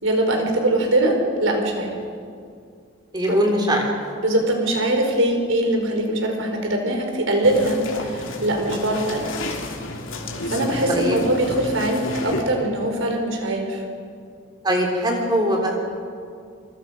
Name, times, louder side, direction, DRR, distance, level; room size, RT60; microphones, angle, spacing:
voice 1, 0.0-2.0 3.3-3.6 4.2-9.2 10.4-13.8, right 1 dB, 75° right, 3 dB, 4.7 m, -22 dB
voice 2, 3.1-3.9 10.9-11.2 14.6-15.8, equal, 20° right, 1 dB, 3.4 m, -21 dB
sound 1, 7.4-12.4, left 2 dB, 70° left, 3.3 m, -31 dB
28.5 x 24.5 x 5.8 m, 2.3 s
head